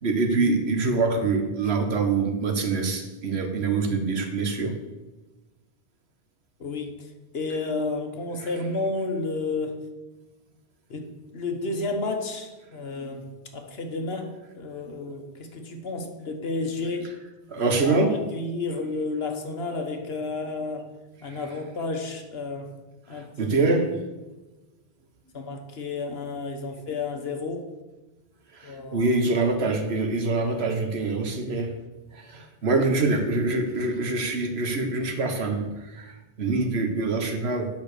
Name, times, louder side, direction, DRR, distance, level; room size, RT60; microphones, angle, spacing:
voice 1, 0.0-4.7 8.4-8.5 17.5-18.1 21.3-21.4 23.1-23.9 28.5-31.7 32.1-37.7, right 3 dB, 85° right, 5 dB, 1.5 m, -25 dB
voice 2, 6.6-7.1 7.3-9.8 10.9-13.3 13.5-17.1 17.6-20.9 21.2-22.7 23.1-23.3 25.3-27.6 28.6-29.1, left 3 dB, 75° left, 5 dB, 1.4 m, -31 dB
8.6 x 5.7 x 6.7 m, 1.1 s
omnidirectional pair, 1.0 m